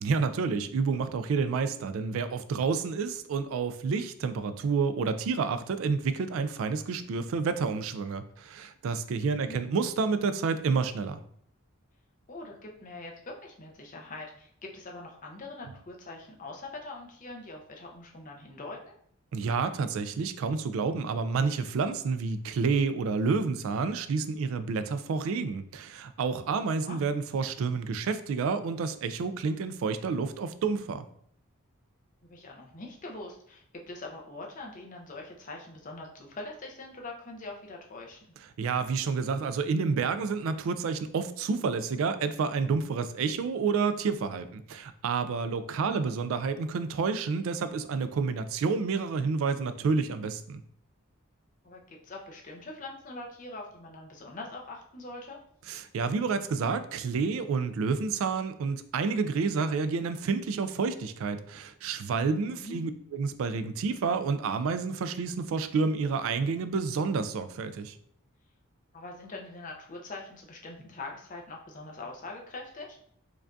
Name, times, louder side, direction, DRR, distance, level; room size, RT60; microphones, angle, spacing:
voice 1, 0.0-11.2 19.3-31.0 38.6-50.6 55.7-68.0, right 5 dB, 70° right, 11 dB, 0.3 m, -29 dB
voice 2, 9.2-9.6 12.3-19.0 26.8-27.0 32.2-38.2 45.8-46.0 51.6-55.4 62.4-62.8 68.9-73.0, left 2 dB, 35° left, 0 dB, 0.6 m, -43 dB
4.7 x 2.3 x 2.5 m, 0.64 s
head